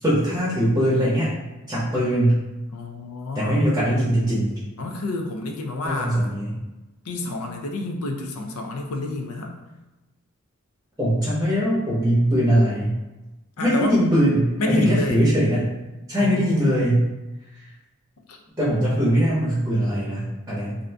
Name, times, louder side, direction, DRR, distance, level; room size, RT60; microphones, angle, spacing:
voice 1, 0.0-1.3 1.7-2.4 3.3-4.5 5.8-6.6 11.0-13.0 13.6-15.7 16.1-17.0 18.6-20.8, equal, 15° right, -8 dB, 0.7 m, -21 dB
voice 2, 2.7-3.6 4.8-6.4 7.1-9.6 13.6-14.0 14.6-15.2 16.2-16.7 18.3-18.4, left 2 dB, 85° left, 3 dB, 0.5 m, -28 dB
2.7 x 2.5 x 3.3 m, 1.1 s
head